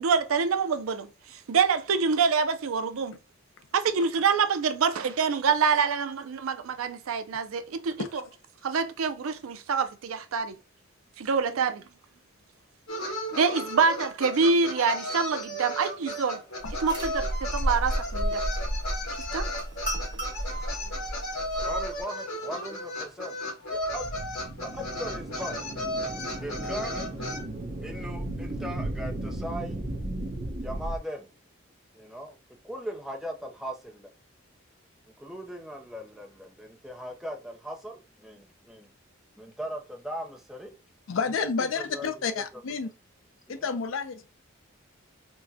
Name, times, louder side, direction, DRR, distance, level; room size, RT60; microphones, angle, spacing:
voice 1, 0.0-3.2 3.7-8.1 8.6-10.5 11.2-11.8 13.4-16.4 16.8-18.4 19.3-19.5 19.9-20.1, right 5 dB, 80° right, 0.4 m, -26 dB
sound 1, 12.9-27.4, left 1 dB, 85° left, 2.1 m, -34 dB
sound 2, 16.6-22.0, right 1 dB, 20° right, 1.1 m, -32 dB
voice 2, 21.5-23.4 23.7-24.1 24.6-25.6 26.4-27.3 27.8-29.8 30.6-31.3 31.9-32.4 32.6-34.1 35.2-38.9 39.4-40.7 41.8-42.4 43.5-43.6, equal, ahead, 0.5 m, -39 dB
sound 3, 23.8-31.0, right 1 dB, 50° right, 0.9 m, -35 dB
voice 3, 41.1-42.9 43.5-44.3, left 5 dB, 70° left, 0.5 m, -30 dB
4.4 x 2.1 x 2.7 m
head